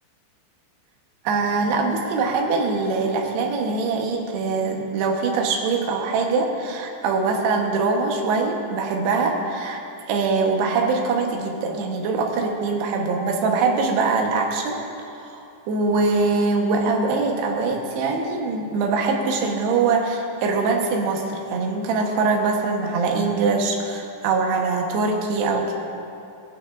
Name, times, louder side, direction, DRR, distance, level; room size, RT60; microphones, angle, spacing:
voice 1, 1.2-9.8 10.1-14.8 15.2-25.7, right 4 dB, 70° right, 1 dB, 2.8 m, -23 dB
22.0 x 9.2 x 2.6 m, 2.7 s
omnidirectional pair, 5.9 m